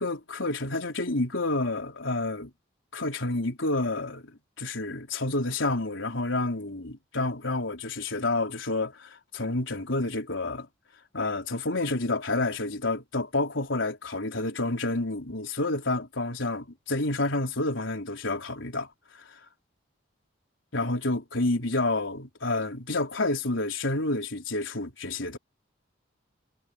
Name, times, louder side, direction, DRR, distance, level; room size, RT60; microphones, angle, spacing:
voice 1, 0.0-2.5 2.9-10.7 11.1-18.9 19.1-19.4 20.7-25.4, left 2 dB, 85° left, 4.2 m, -29 dB
head